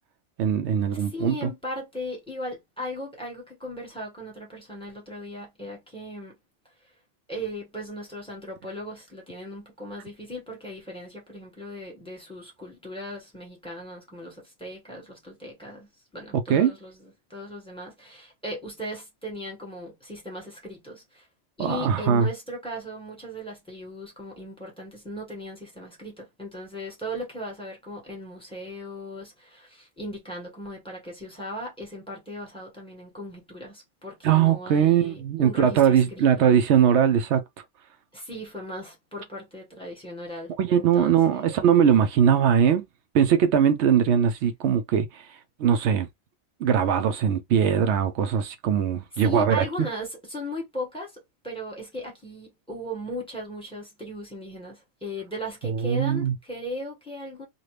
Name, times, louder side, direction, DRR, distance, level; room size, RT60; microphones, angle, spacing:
voice 1, 0.4-1.5 16.5-16.7 21.6-22.3 34.2-37.4 40.6-42.8 43.1-45.2 45.6-46.1 46.6-49.6 55.6-56.3, right 8 dB, 80° right, 0.9 m, -21 dB
voice 2, 1.0-6.3 7.3-21.3 21.6-36.5 38.1-41.6 49.1-57.5, equal, 5° left, 1.5 m, -37 dB
2.7 x 2.5 x 3.2 m
omnidirectional pair, 1.1 m